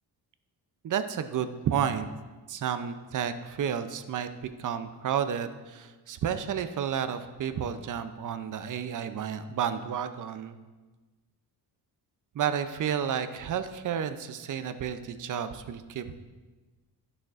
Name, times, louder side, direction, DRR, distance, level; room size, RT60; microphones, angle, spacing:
voice 1, 0.8-2.1 2.5-4.3 4.6-10.6 12.3-16.1, right 8 dB, 50° right, 10 dB, 0.5 m, -31 dB
11.5 x 6.4 x 2.5 m, 1.3 s
cardioid pair, 110°, 41 cm